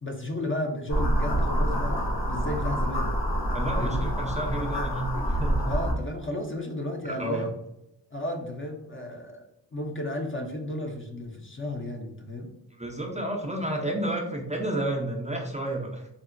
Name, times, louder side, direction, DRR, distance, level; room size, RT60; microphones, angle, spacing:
voice 1, 0.0-3.2 3.7-4.0 5.7-7.5 8.1-9.5 9.7-12.5, left 1 dB, 30° left, 2 dB, 0.6 m, -33 dB
sound 1, 0.9-5.9, equal, 75° left, 0.9 m, -27 dB
voice 2, 3.5-5.7 7.0-7.5 12.8-16.1, right 1 dB, 15° right, 0 dB, 0.5 m, -31 dB
3.7 x 2.1 x 2.5 m, 0.88 s
cardioid pair, 40°, 44 cm